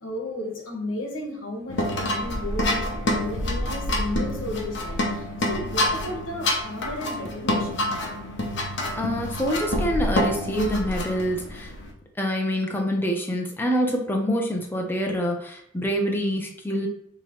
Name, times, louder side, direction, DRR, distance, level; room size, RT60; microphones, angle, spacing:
voice 1, 0.0-7.9, left 1 dB, 80° left, 1 dB, 1.3 m, -34 dB
sound 1, 1.7-11.9, left 1 dB, 60° left, 0.8 m, -27 dB
voice 2, 8.9-11.7 12.2-16.9, equal, 10° left, 1 dB, 0.5 m, -26 dB
5.8 x 3.0 x 3.0 m, 0.74 s
head